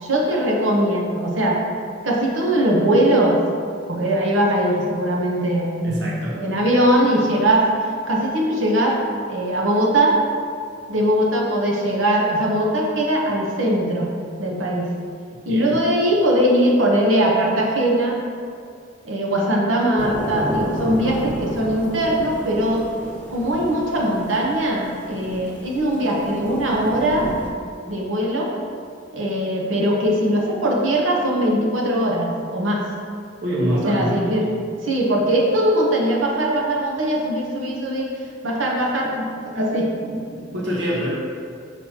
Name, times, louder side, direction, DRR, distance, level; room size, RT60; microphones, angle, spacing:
voice 1, 0.0-1.6 2.0-3.4 3.9-7.7 8.1-9.0 9.3-10.2 10.9-14.1 14.4-14.9 15.5-18.2 19.0-22.8 23.3-27.3 27.9-28.5 29.1-32.8 33.9-34.4 34.8-40.4, right 1 dB, 85° right, -2 dB, 0.9 m, -20 dB
voice 2, 5.8-6.4 15.5-15.8 33.4-34.1 40.5-41.1, equal, 60° right, -6 dB, 1.1 m, -24 dB
sound 1, 20.0-27.5, equal, 10° left, 1.0 m, -32 dB
6.1 x 5.7 x 2.9 m, 2.2 s
head